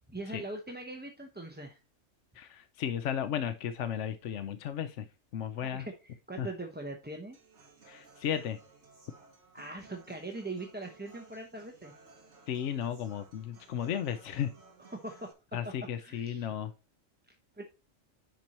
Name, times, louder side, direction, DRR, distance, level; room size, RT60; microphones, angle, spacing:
voice 1, 0.1-1.8 5.6-7.4 9.5-11.9 14.9-15.3 15.6-15.7 16.0-16.5 17.3-17.6, right 2 dB, 10° right, 0.8 m, -41 dB
voice 2, 2.4-5.1 5.3-5.9 6.4-6.5 7.9-8.6 12.5-14.5 15.5-16.7, left 9 dB, 70° left, 1.0 m, -34 dB
Human voice / Acoustic guitar, 7.3-15.3, right 3 dB, 55° right, 2.2 m, -58 dB
10.5 x 4.6 x 4.2 m
omnidirectional pair, 1.4 m